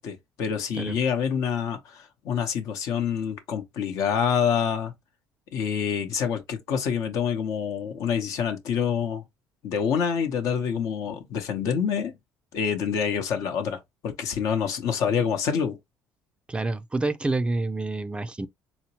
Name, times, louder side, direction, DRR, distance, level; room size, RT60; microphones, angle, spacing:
voice 1, 0.0-4.9 5.5-9.2 9.6-12.1 12.5-15.8, left 7 dB, 70° left, 0.8 m, -27 dB
voice 2, 16.5-18.5, right 2 dB, 15° right, 0.4 m, -28 dB
4.2 x 2.0 x 2.8 m
supercardioid pair, 75°, 6 cm